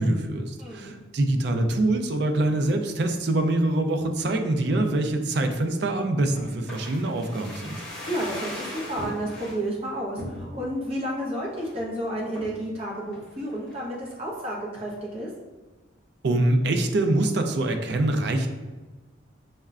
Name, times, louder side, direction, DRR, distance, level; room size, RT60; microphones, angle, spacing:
voice 1, 0.0-7.8 16.2-18.5, right 2 dB, 60° right, 5 dB, 0.4 m, -24 dB
voice 2, 0.6-0.9 7.7-15.3, right 1 dB, 30° right, -4 dB, 0.8 m, -31 dB
sound 1, 6.3-9.6 10.2-10.8 11.2-11.3 11.5-11.9 12.3-12.7 13.1-13.8 14.1-14.2, left 1 dB, 5° left, 0.8 m, -38 dB
5.5 x 2.1 x 2.4 m, 1.2 s
head